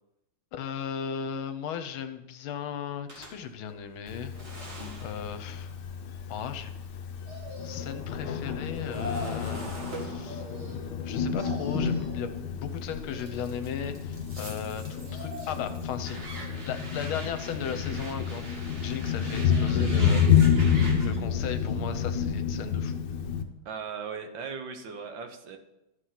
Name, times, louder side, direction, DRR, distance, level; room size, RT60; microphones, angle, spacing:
voice 1, 0.5-4.3 5.0-5.7 6.3-6.7 7.6-12.3 12.6-16.2 16.6-18.5 18.8-20.3 21.0-23.0, left 8 dB, 80° left, 10 dB, 1.6 m, -36 dB
sound 1, 3.1-7.4 7.7-12.6 13.2-21.2, right 1 dB, 30° right, 1.9 m, -44 dB
Thunder, 4.1-23.4, left 7 dB, 65° left, 1.3 m, -29 dB
sound 2, 7.3-8.1 8.7-9.5 10.3-11.0 11.3-12.2 12.8-13.7 14.8-15.8 16.3-17.0 17.6-18.4 19.4-20.2 21.0-21.9 22.3-22.4, left 1 dB, 85° right, 4.9 m, -44 dB
voice 2, 23.6-25.6, right 6 dB, 65° right, 6 dB, 1.6 m, -38 dB
13.0 x 5.0 x 5.8 m, 0.91 s
omnidirectional pair, 2.3 m